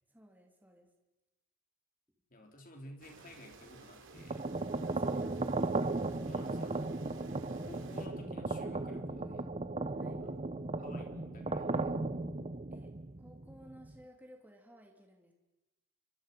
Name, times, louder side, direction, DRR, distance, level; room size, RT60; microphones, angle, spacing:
voice 1, 0.1-0.9 4.9-5.7 9.9-10.3 12.7-12.9 13.2-15.3, equal, 10° right, 1 dB, 3.0 m, -56 dB
voice 2, 2.3-4.5 5.1-5.2 6.2-6.9 7.7-9.5 10.2-10.4 10.8-12.0, left 1 dB, 40° left, 3 dB, 3.7 m, -53 dB
sound 1, 3.0-8.1, right 3 dB, 60° right, 2.8 m, -56 dB
sound 2, 4.1-13.9, right 3 dB, 30° right, 0.8 m, -36 dB
sound 3, 6.0-12.5, left 1 dB, 85° left, 1.1 m, -54 dB
29.0 x 24.5 x 5.5 m, 1.0 s
head